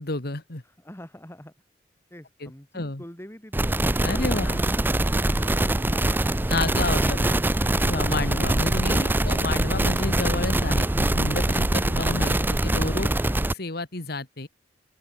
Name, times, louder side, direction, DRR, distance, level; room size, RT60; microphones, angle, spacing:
voice 1, 0.0-0.6 2.4-3.0 4.0-4.6 6.5-7.3 7.8-13.1 13.6-14.5, left 2 dB, 60° left, 2.1 m, -30 dB
voice 2, 0.6-1.5 2.1-8.0 12.1-12.2 13.0-13.3, left 1 dB, 15° left, 3.3 m, -45 dB
sound 1, 3.5-13.5, right 1 dB, 10° right, 0.6 m, -23 dB
open air
head